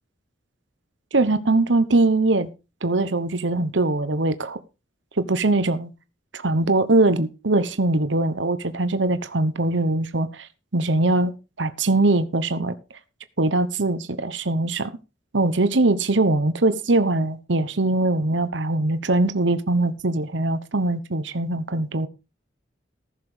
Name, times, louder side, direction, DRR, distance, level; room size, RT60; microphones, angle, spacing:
voice 1, 1.1-2.5 2.8-4.6 5.2-5.9 6.4-10.5 10.7-11.3 11.6-12.7 13.4-15.0 15.3-22.1, right 2 dB, 70° right, 11 dB, 1.1 m, -21 dB
15.0 x 6.8 x 5.1 m, 0.29 s
head